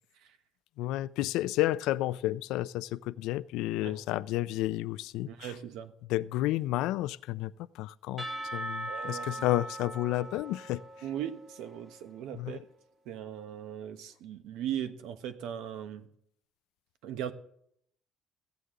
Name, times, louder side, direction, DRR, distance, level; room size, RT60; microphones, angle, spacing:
voice 1, 0.8-5.5 6.1-8.3 8.5-10.8 12.4-12.6, left 15 dB, 90° left, 16 dB, 0.4 m, -31 dB
voice 2, 5.3-5.9 8.9-9.4 11.0-12.6 13.0-16.1 17.0-17.3, right 10 dB, 85° right, 9 dB, 1.1 m, -39 dB
Percussion / Church bell, 8.2-12.2, right 1 dB, 15° right, 1.2 m, -40 dB
16.0 x 8.2 x 3.8 m, 0.68 s
cardioid pair, 145°, 0 cm